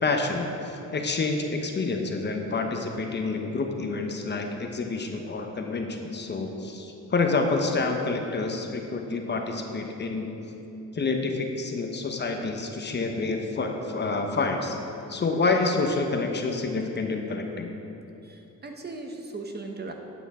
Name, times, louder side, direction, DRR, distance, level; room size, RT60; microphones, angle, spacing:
voice 1, 0.0-10.3 10.9-14.8 15.1-17.7, left 3 dB, 35° left, 3 dB, 1.0 m, -28 dB
voice 2, 18.2-19.9, right 3 dB, 35° right, 3 dB, 1.0 m, -38 dB
11.5 x 8.3 x 3.7 m, 3.0 s
cardioid pair, 90°, 30 cm